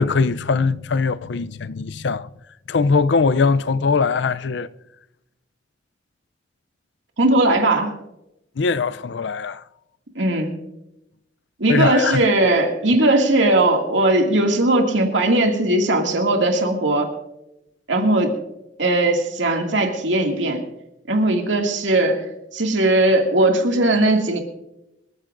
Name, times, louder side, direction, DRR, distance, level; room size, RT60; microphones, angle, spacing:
voice 1, 0.0-2.3 2.7-4.7 8.6-9.6 11.7-12.2, left 4 dB, 70° left, 0.5 m, -21 dB
voice 2, 7.2-7.9 10.2-10.6 11.6-17.1 17.9-18.3 18.8-20.6 21.1-22.2 22.5-24.4, right 2 dB, 85° right, 2.3 m, -18 dB
25.0 x 14.0 x 2.6 m
head